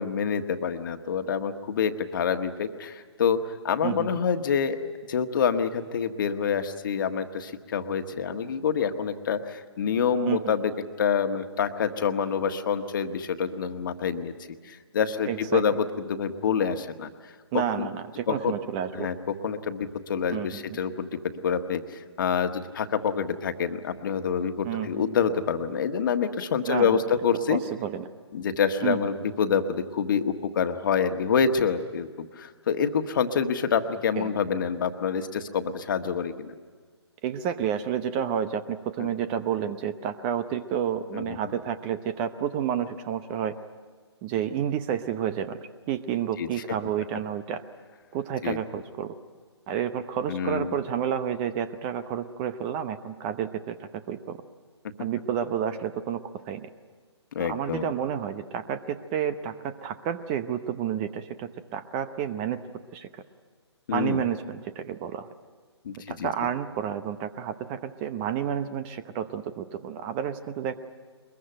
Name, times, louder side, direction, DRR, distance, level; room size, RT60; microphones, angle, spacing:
voice 1, 0.0-4.8 5.1-10.7 11.0-14.3 14.7-17.1 17.8-17.9 18.3-18.6 18.9-27.6 28.3-36.5 39.0-39.1 41.1-41.4 46.4-46.5 48.4-48.6 50.3-50.8 57.3-57.9 63.9-64.2 65.8-66.3, left 6 dB, 45° left, 7 dB, 1.5 m, -27 dB
voice 2, 15.2-15.6 17.5-19.1 20.3-20.6 24.6-25.1 26.7-27.0 27.5-28.1 28.8-29.1 34.2-34.3 37.2-43.5 44.2-45.6 45.9-47.6 48.1-49.1 49.7-54.4 55.0-56.7 57.4-62.6 62.9-63.2 63.9-65.3 66.1-70.8, right 9 dB, 20° right, 12 dB, 0.8 m, -30 dB
22.5 x 22.0 x 9.0 m, 1.5 s
figure-of-eight pair, 140°, 14 cm